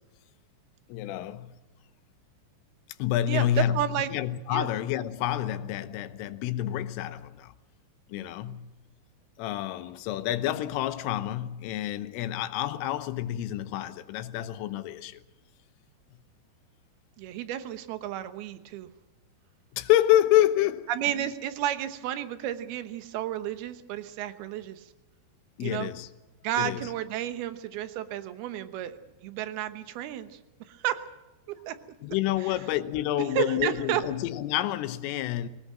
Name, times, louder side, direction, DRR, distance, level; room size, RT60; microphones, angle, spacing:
voice 1, 0.9-1.5 3.0-7.6 8.1-8.8 9.4-15.2 19.7-20.9 25.6-26.1 26.6-26.8 32.0-35.5, left 13 dB, 80° left, 3.5 m, -28 dB
voice 2, 3.3-4.1 4.5-4.7 8.1-8.6 17.2-18.9 20.9-24.9 25.6-25.9 26.4-30.4 30.7-31.0 31.5-31.8 32.4-32.6 33.3-34.0, right 11 dB, 75° right, 2.4 m, -32 dB
22.0 x 19.0 x 7.5 m
omnidirectional pair, 5.9 m